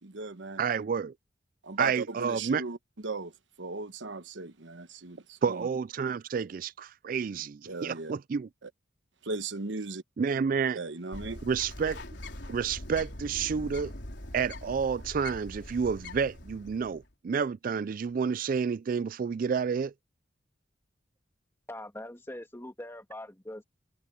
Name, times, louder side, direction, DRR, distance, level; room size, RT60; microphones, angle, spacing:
voice 1, 0.0-0.6 1.6-2.8 3.0-3.3 3.6-5.7 7.7-8.1 8.6-8.7 9.2-10.0 10.7-11.4, right 3 dB, 90° right, 1.2 m, -37 dB
voice 2, 0.6-1.1 1.8-2.6 5.4-8.5 10.2-10.8 11.4-12.0 12.5-13.9 14.3-19.9, right 6 dB, 50° right, 0.3 m, -30 dB
Bird, 11.1-17.0, left 1 dB, 70° left, 4.2 m, -42 dB
voice 3, 21.7-23.6, left 1 dB, 15° left, 2.0 m, -42 dB
head